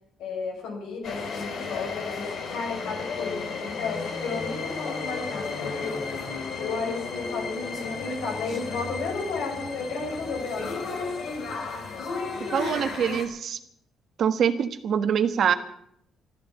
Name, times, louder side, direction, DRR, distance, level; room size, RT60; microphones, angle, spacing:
voice 1, 0.2-6.0 6.6-10.9, left 4 dB, 90° left, 1 dB, 5.4 m, -33 dB
sound 1, 1.0-13.3, left 4 dB, 70° left, 3.1 m, -33 dB
voice 2, 12.5-13.6 14.2-15.5, right 8 dB, 65° right, 10 dB, 1.3 m, -24 dB
14.0 x 10.5 x 8.5 m, 0.72 s
cardioid pair, 90°, 0 cm